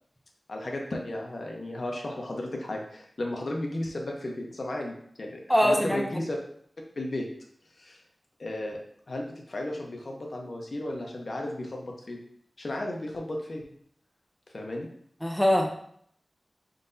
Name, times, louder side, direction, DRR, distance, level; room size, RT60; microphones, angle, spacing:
voice 1, 0.5-6.4 7.0-7.3 7.8-8.0 8.4-8.8 9.1-12.2 12.6-13.6 14.5-14.9, left 1 dB, 55° left, 0 dB, 0.8 m, -34 dB
voice 2, 5.5-6.0 15.2-15.8, equal, ahead, 1 dB, 0.5 m, -23 dB
4.0 x 3.8 x 2.6 m, 0.65 s
wide cardioid pair, 85°, 0 cm